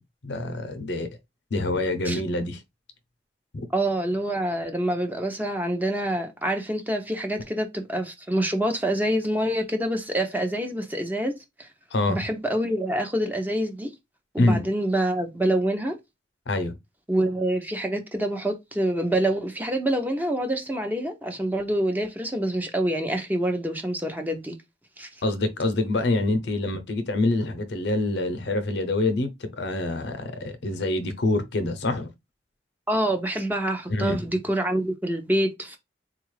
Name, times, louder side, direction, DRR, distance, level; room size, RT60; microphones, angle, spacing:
voice 1, 0.2-1.1 1.5-2.6 11.9-12.2 14.4-14.6 16.5-16.8 25.2-32.1 33.9-34.3, left 2 dB, 75° left, 0.7 m, -26 dB
voice 2, 3.7-11.7 12.1-13.9 14.3-16.0 17.1-24.5 25.0-25.1 32.9-35.8, right 1 dB, 10° right, 0.6 m, -26 dB
4.0 x 2.4 x 3.2 m
head